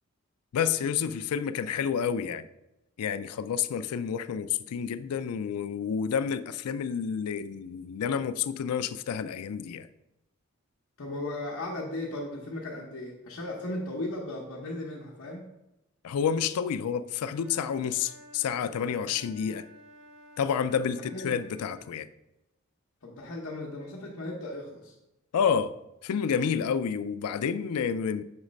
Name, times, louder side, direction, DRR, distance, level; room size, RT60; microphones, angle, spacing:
voice 1, 0.5-2.4 3.0-9.9 16.0-19.7 20.4-22.1 25.3-25.7 26.0-28.2, left 7 dB, 85° left, 13 dB, 0.4 m, -29 dB
voice 2, 11.0-15.5 20.8-21.3 23.0-24.9, left 1 dB, 65° left, -4 dB, 0.9 m, -36 dB
Wind instrument woodwind instrument, 17.3-21.9, left 1 dB, 60° right, 1.1 m, -52 dB
6.2 x 3.1 x 5.1 m, 0.91 s
head